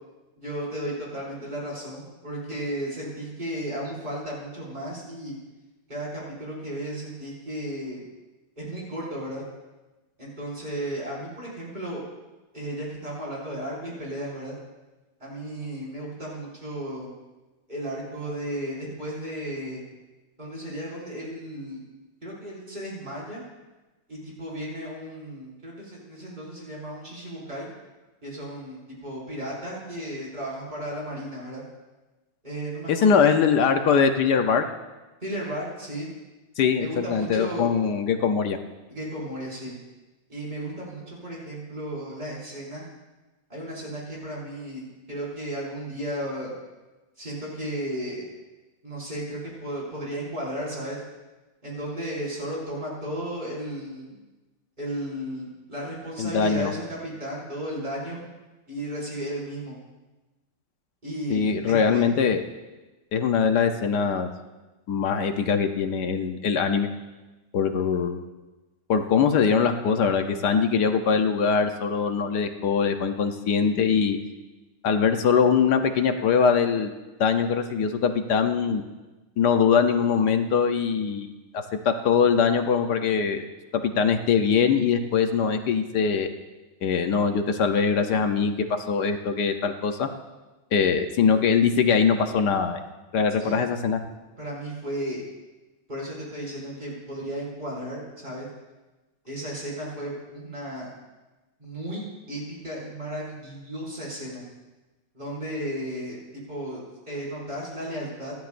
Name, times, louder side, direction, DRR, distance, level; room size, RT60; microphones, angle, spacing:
voice 1, 0.4-5.3 5.9-8.0 8.6-9.4 10.2-12.0 12.5-14.5 15.2-17.1 17.7-19.8 20.4-21.8 22.2-23.4 24.1-27.7 28.2-31.6 32.4-33.3 35.2-36.1 36.8-37.7 38.9-39.7 40.3-42.8 43.5-46.5 47.2-48.3 48.8-51.0 51.6-54.2 54.8-58.2 58.7-59.8 61.0-62.0 93.4-93.6 94.4-95.2 95.9-98.5 99.2-100.9 101.6-104.4 105.1-108.3, right 1 dB, 25° right, -6 dB, 6.2 m, -34 dB
voice 2, 32.9-34.6 36.6-38.6 56.2-56.7 61.3-62.4 63.1-64.3 64.9-66.9 67.5-68.2 68.9-74.2 74.8-76.9 77.2-78.8 79.4-81.3 81.8-83.4 84.0-86.3 86.8-90.1 90.7-92.8 93.1-94.0, left 6 dB, 65° left, 6 dB, 1.4 m, -22 dB
26.0 x 11.5 x 2.6 m, 1.1 s
omnidirectional pair, 2.0 m